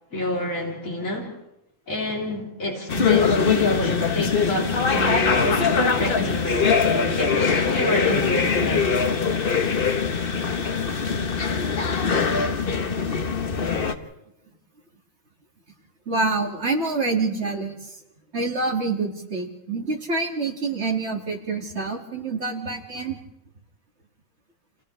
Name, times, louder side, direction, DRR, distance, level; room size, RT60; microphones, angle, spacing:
voice 1, 0.1-1.4 1.9-9.0, left 1 dB, 75° left, 3.9 m, -29 dB
sound 1, 2.9-13.9, left 5 dB, 45° left, 1.2 m, -22 dB
voice 2, 16.1-18.0 18.3-23.2, right 3 dB, 50° right, 2.6 m, -26 dB
29.5 x 28.5 x 3.3 m
omnidirectional pair, 1.4 m